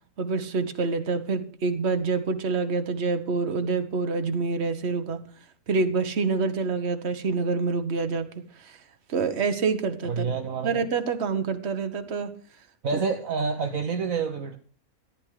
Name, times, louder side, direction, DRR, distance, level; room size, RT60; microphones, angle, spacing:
voice 1, 0.2-5.2 5.7-8.3 8.6-8.8 9.1-10.3 10.6-12.3 12.9-13.0, right 4 dB, 45° right, 1.5 m, -27 dB
voice 2, 10.1-10.8 12.8-14.6, right 5 dB, 60° right, 1.4 m, -28 dB
14.5 x 11.0 x 5.0 m
omnidirectional pair, 1.6 m